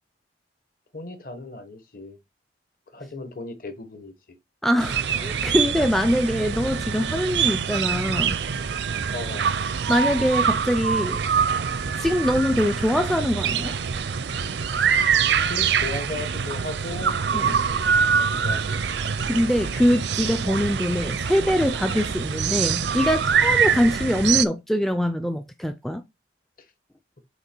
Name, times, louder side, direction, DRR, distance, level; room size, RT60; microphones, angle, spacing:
voice 1, 0.9-2.2 2.9-4.4 5.1-5.4 9.1-9.5 15.2-18.8 23.7-24.0, left 2 dB, 50° left, 1.2 m, -37 dB
voice 2, 4.6-8.4 9.9-11.2 12.0-13.7 17.3-17.5 19.3-26.0, equal, ahead, 0.3 m, -23 dB
sound 1, 4.8-24.5, right 6 dB, 70° right, 0.5 m, -24 dB
7.9 x 2.9 x 4.5 m
head